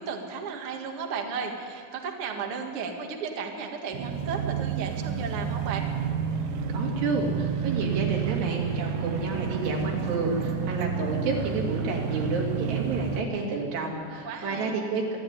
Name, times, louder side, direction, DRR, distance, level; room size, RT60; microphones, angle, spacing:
voice 1, 0.0-5.8 14.2-14.7, right 5 dB, 45° right, 2 dB, 2.0 m, -34 dB
sound 1, 3.9-13.2, right 7 dB, 70° right, 2.5 m, -30 dB
voice 2, 6.7-15.2, right 3 dB, 90° right, -1 dB, 4.8 m, -30 dB
25.0 x 10.5 x 9.9 m, 2.2 s
omnidirectional pair, 4.6 m